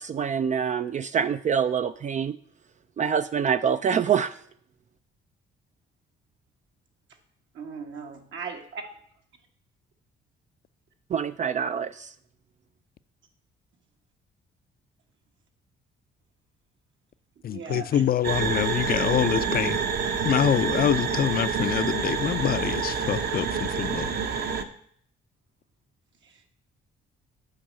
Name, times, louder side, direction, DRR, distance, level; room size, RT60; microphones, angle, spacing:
voice 1, 0.0-2.4 3.0-4.3 11.1-12.1, right 7 dB, 40° right, 0.4 m, -25 dB
voice 2, 7.5-8.9 17.5-18.1 26.2-26.5, right 5 dB, 70° right, 1.7 m, -38 dB
voice 3, 17.4-19.8 20.2-24.1, left 9 dB, 50° left, 0.5 m, -25 dB
sound 1, 18.2-24.6, right 6 dB, 55° right, 1.0 m, -27 dB
8.9 x 4.7 x 7.6 m
cardioid pair, 90°, 20 cm